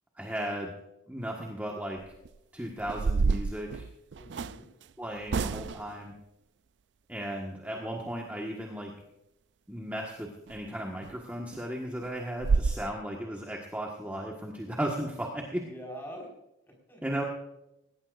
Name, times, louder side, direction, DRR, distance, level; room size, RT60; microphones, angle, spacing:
voice 1, 0.2-0.7 1.1-2.0 2.5-3.8 5.0-6.1 7.1-8.9 9.7-15.6 17.0-17.2, right 1 dB, 10° right, -1 dB, 1.5 m, -35 dB
sound 1, 2.0-2.3 2.8-4.6 5.3-5.9 10.5-10.6 11.0-11.1 11.5-11.6 12.0-12.1 12.4-12.7, right 4 dB, 65° right, 0.4 m, -28 dB
voice 2, 4.1-4.7 15.5-16.3 16.6-17.3, equal, 10° left, 0 dB, 5.0 m, -45 dB
18.5 x 17.5 x 2.6 m, 0.87 s
head